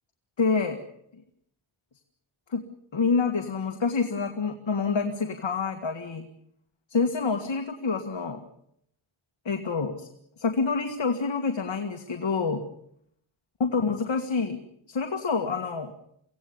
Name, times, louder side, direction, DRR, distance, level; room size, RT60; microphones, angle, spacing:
voice 1, 0.4-0.8 2.5-2.6 2.9-6.2 6.9-8.4 9.5-10.1 10.4-12.6 13.6-14.6 14.9-15.9, left 4 dB, 65° left, 5 dB, 2.0 m, -27 dB
25.0 x 17.0 x 9.6 m, 0.73 s
wide cardioid pair, 105°, 49 cm